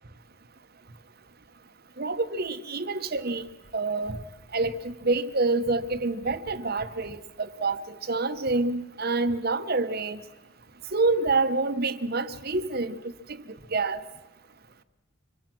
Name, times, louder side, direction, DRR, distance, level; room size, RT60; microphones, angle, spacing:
voice 1, 2.0-3.4 3.7-4.2 4.5-10.2 10.9-12.9 13.7-14.0, right 3 dB, 45° right, 11 dB, 1.0 m, -27 dB
25.5 x 23.0 x 6.1 m, 1.3 s
head